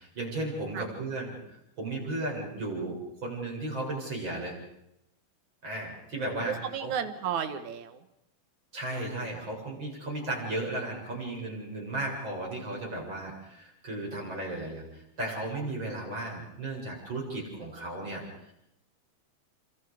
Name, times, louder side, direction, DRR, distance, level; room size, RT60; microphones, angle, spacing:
voice 1, 0.0-4.6 5.6-6.9 8.7-18.5, right 2 dB, 40° right, -1 dB, 8.5 m, -35 dB
voice 2, 6.5-8.1 8.9-9.0, right 8 dB, 75° right, 10 dB, 2.9 m, -33 dB
29.5 x 26.5 x 5.1 m, 0.81 s
omnidirectional pair, 3.4 m